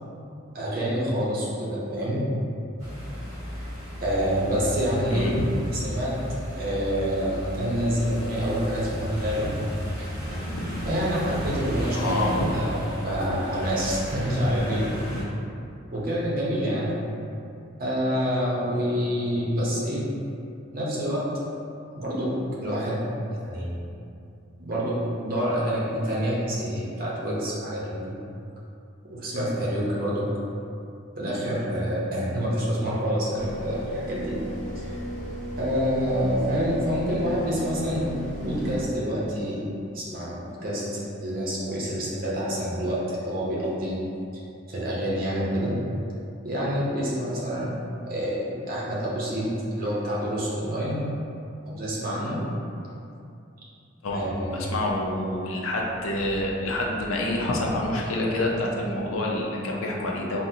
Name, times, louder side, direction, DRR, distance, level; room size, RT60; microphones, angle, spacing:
voice 1, 0.5-2.2 4.0-5.4 5.7-6.1 6.5-9.5 10.8-12.8 13.0-14.9 15.9-17.0 17.8-20.1 20.7-21.2 21.9-22.3 22.6-23.0 23.4-23.8 24.6-28.1 29.1-30.3 31.2-34.4 34.8-35.0 35.6-38.0 38.4-39.6 39.9-44.0 44.7-45.7 46.4-47.7 48.1-49.5 49.8-51.0 51.6-52.4 54.1-54.8, equal, 45° right, -7 dB, 0.7 m, -27 dB
sound 1, 2.8-15.2, equal, 15° right, 1.0 m, -34 dB
voice 2, 5.1-5.4 10.3-10.8 11.9-12.5 15.1-15.2 54.0-60.5, left 1 dB, 90° left, -2 dB, 0.5 m, -28 dB
sound 2, 33.3-38.9, equal, 35° left, 0.4 m, -35 dB
3.7 x 2.1 x 2.7 m, 2.6 s
head